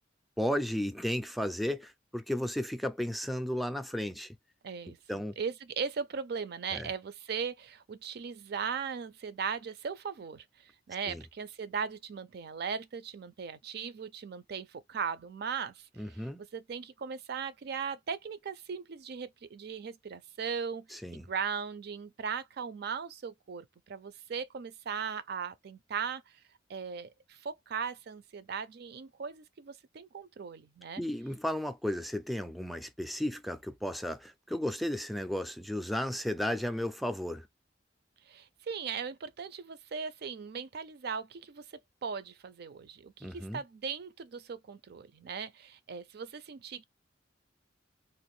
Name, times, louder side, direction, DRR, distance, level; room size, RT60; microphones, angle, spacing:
voice 1, 0.4-4.4 4.9-5.3 6.7-6.9 11.1-11.2 16.0-16.4 20.9-21.3 31.0-37.5 43.2-43.6, left 1 dB, ahead, 0.4 m, -34 dB
voice 2, 4.6-16.2 16.5-26.4 26.7-31.0 38.2-46.8, right 6 dB, 60° right, 0.4 m, -38 dB
3.0 x 2.5 x 3.1 m
head